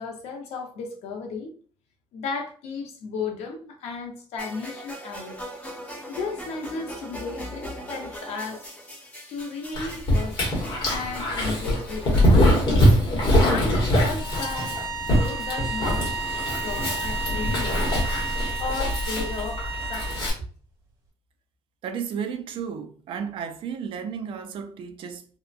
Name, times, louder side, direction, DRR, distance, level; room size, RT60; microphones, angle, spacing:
voice 1, 0.0-1.5 2.1-5.4 6.1-8.6 9.3-12.6 13.3-14.8 15.1-16.1 16.5-17.9 18.6-19.6 19.9-20.2, left 4 dB, 80° left, 0.7 m, -34 dB
sound 1, 4.4-12.4, equal, 10° left, 0.7 m, -40 dB
Dog, 9.7-20.3, equal, 45° left, 1.1 m, -23 dB
sound 2, 14.2-20.3, right 4 dB, 35° right, 1.3 m, -33 dB
voice 2, 21.8-25.3, right 7 dB, 55° right, 0.3 m, -33 dB
2.8 x 2.1 x 2.3 m
cardioid pair, 175°, 11 cm